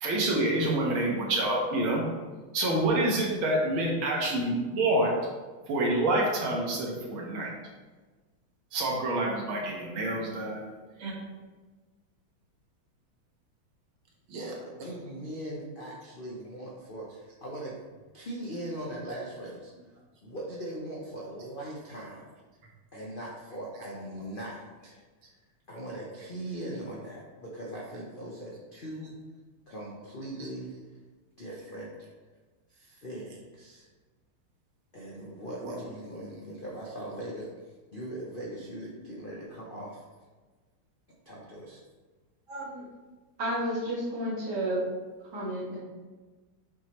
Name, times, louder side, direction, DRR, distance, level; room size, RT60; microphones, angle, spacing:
voice 1, 0.0-2.1 2.5-5.2 5.7-7.5 8.7-10.7 11.0-11.1 14.3-14.9 35.6-35.8, right 1 dB, 75° right, -2 dB, 2.0 m, -27 dB
voice 2, 14.6-17.8 18.1-19.7 20.2-22.3 22.9-25.0 25.7-29.2 29.7-30.8 31.4-31.9 32.7-33.9 34.9-37.5 37.9-40.0 41.2-41.8, right 1 dB, 50° left, -4 dB, 0.6 m, -40 dB
voice 3, 42.5-42.8 43.4-44.8 45.3-45.8, right 1 dB, 55° right, -6 dB, 2.3 m, -31 dB
7.5 x 4.7 x 3.0 m, 1.3 s
omnidirectional pair, 2.3 m